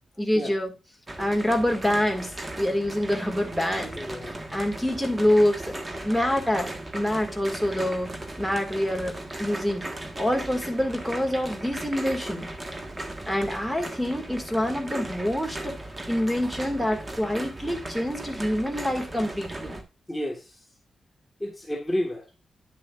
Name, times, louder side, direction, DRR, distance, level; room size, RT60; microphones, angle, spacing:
voice 1, 0.2-0.7 1.2-3.9 4.5-5.6 6.0-8.1 8.4-9.9 10.2-12.5 13.3-15.7 16.1-19.8, left 1 dB, 5° right, 1.9 m, -26 dB
sound 1, 1.1-19.8, right 1 dB, 25° right, 1.3 m, -37 dB
voice 2, 3.9-4.4 20.1-20.6 21.4-22.3, left 1 dB, 15° left, 1.4 m, -31 dB
9.9 x 7.1 x 2.3 m
cardioid pair, 105°, 0 cm